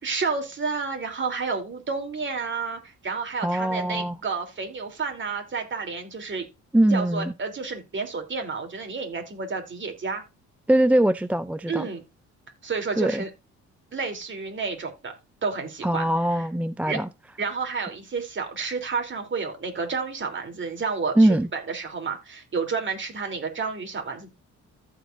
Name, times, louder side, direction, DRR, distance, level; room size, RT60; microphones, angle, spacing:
voice 1, 0.0-6.5 6.9-10.2 11.7-12.0 12.6-13.3 13.9-15.1 15.4-16.0 16.3-16.4 16.9-17.0 17.4-24.3, right 4 dB, 40° right, 3.3 m, -30 dB
voice 2, 3.4-4.2 6.7-7.3 10.7-11.9 13.0-13.2 15.8-17.1 21.2-21.5, right 1 dB, 5° right, 0.3 m, -22 dB
14.5 x 5.0 x 2.6 m
cardioid pair, 90°, 30 cm